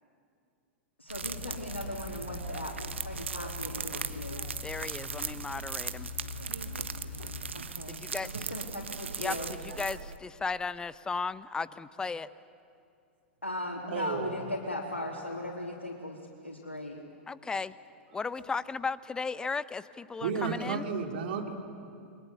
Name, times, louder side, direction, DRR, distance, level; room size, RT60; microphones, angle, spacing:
voice 1, 1.0-4.4 7.5-9.5 13.4-17.0, left 1 dB, 90° left, 3.0 m, -38 dB
sound 1, 1.1-10.2, right 5 dB, 75° right, 1.2 m, -38 dB
sound 2, 1.2-7.6, left 7 dB, 65° left, 2.3 m, -44 dB
voice 2, 4.6-6.1 7.9-8.3 9.2-12.3 17.3-17.7 18.1-20.8, left 4 dB, 10° left, 0.7 m, -35 dB
voice 3, 13.9-14.4 18.1-18.2 20.2-21.6, right 5 dB, 60° right, 3.4 m, -33 dB
30.0 x 22.5 x 8.1 m
figure-of-eight pair, 100°, 6 cm